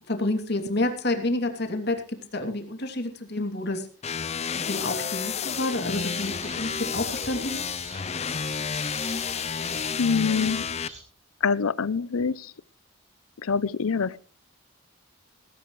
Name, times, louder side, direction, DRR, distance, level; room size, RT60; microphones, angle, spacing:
voice 1, 0.0-3.9 4.5-7.7, left 2 dB, 50° left, 5 dB, 2.9 m, -29 dB
sound 1, 4.0-10.9, left 6 dB, 30° left, 0.6 m, -31 dB
sound 2, 5.8-11.0, right 2 dB, 35° right, 5.3 m, -45 dB
voice 2, 10.0-10.6 11.4-12.5 13.4-14.2, left 5 dB, 85° left, 20 dB, 0.6 m, -25 dB
17.5 x 17.0 x 3.2 m, 0.37 s
head